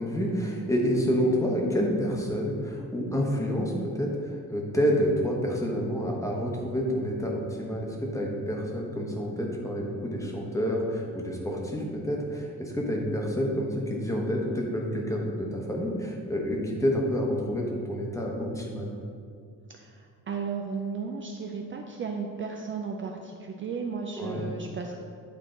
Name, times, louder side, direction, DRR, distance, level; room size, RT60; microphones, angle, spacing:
voice 1, 0.0-18.9 24.2-24.4, equal, 10° left, -1 dB, 1.0 m, -28 dB
voice 2, 19.7-25.0, right 5 dB, 35° right, 2 dB, 0.4 m, -34 dB
10.0 x 4.6 x 3.8 m, 2.3 s
cardioid pair, 155°, 34 cm